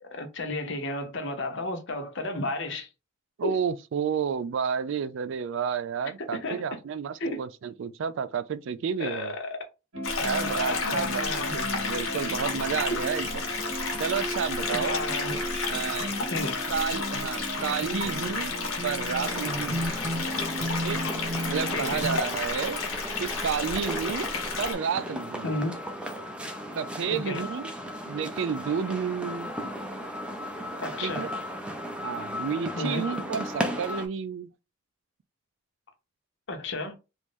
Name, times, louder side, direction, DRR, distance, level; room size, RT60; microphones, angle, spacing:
voice 1, 0.0-2.9 3.4-3.6 6.4-6.6 7.2-7.4 9.0-9.6 10.2-11.5 12.9-13.0 14.7-15.4 16.3-16.5 21.0-21.2 21.7-22.1 25.4-25.7 27.1-27.5 30.8-31.3 32.8-33.0 36.5-36.9, left 2 dB, 65° left, 0.9 m, -32 dB
voice 2, 3.4-9.3 10.2-11.2 11.5-13.5 14.0-15.0 15.7-16.1 16.7-18.5 18.8-20.0 20.8-21.0 21.5-22.8 23.2-24.3 24.6-25.6 26.7-27.7 28.0-29.5 31.0-31.3 32.0-34.5, right 7 dB, 65° right, 0.3 m, -31 dB
sound 1, 9.9-22.2, equal, 90° right, 1.0 m, -35 dB
sound 2, 10.0-24.7, left 4 dB, 90° left, 1.2 m, -32 dB
sound 3, 19.2-34.1, equal, 5° right, 0.5 m, -36 dB
3.0 x 2.6 x 3.5 m
head